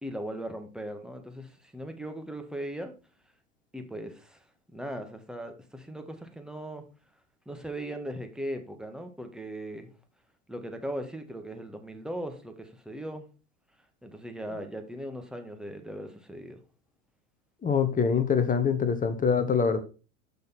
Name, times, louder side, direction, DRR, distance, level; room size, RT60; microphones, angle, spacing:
voice 1, 0.0-2.9 3.7-4.4 4.7-6.9 7.4-9.9 10.5-13.3 14.0-16.6, right 1 dB, ahead, 1.6 m, -38 dB
voice 2, 17.6-19.8, left 6 dB, 20° left, 1.3 m, -24 dB
6.8 x 6.3 x 4.3 m
hypercardioid pair, 80°, 38 cm